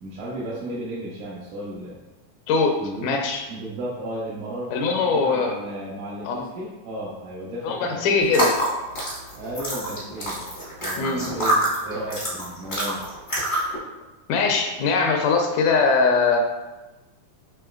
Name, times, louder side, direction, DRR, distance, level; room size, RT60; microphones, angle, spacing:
voice 1, 0.0-2.0 2.8-3.2 3.5-8.1 9.4-10.5 10.8-11.6 11.8-13.0, right 1 dB, 85° right, -8 dB, 2.3 m, -34 dB
voice 2, 2.5-3.4 4.7-5.5 6.3-6.5 7.6-8.5 11.0-11.4 14.3-16.4, left 4 dB, 85° left, 3 dB, 2.0 m, -21 dB
sound 1, 8.2-13.8, right 1 dB, 50° left, 0.5 m, -26 dB
6.8 x 3.1 x 2.4 m, 1.1 s
omnidirectional pair, 3.5 m